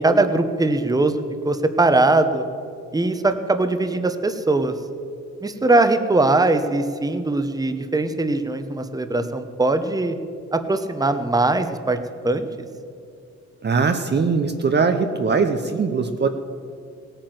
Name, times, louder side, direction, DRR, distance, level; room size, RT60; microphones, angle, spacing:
voice 1, 0.0-2.4 2.9-4.7 5.4-10.1 10.5-12.0 12.2-12.5, right 2 dB, 10° right, 8 dB, 1.1 m, -20 dB
voice 2, 13.6-16.3, right 5 dB, 35° right, 6 dB, 1.0 m, -21 dB
17.0 x 9.0 x 7.9 m, 2.5 s
cardioid pair, 90°, 30 cm